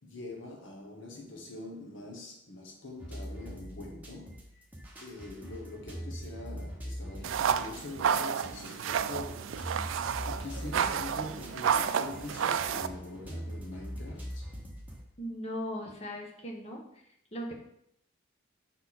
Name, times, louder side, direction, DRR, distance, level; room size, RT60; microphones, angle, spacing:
voice 1, 0.0-4.5 5.0-10.0 10.3-14.5, left 2 dB, 70° left, 1.0 m, -44 dB
sound 1, 3.0-15.0, equal, 10° right, 1.2 m, -43 dB
sound 2, 7.2-12.9, right 7 dB, 80° right, 0.3 m, -30 dB
voice 2, 15.2-16.8 17.3-17.5, equal, 35° left, 1.2 m, -38 dB
5.6 x 4.5 x 4.2 m
head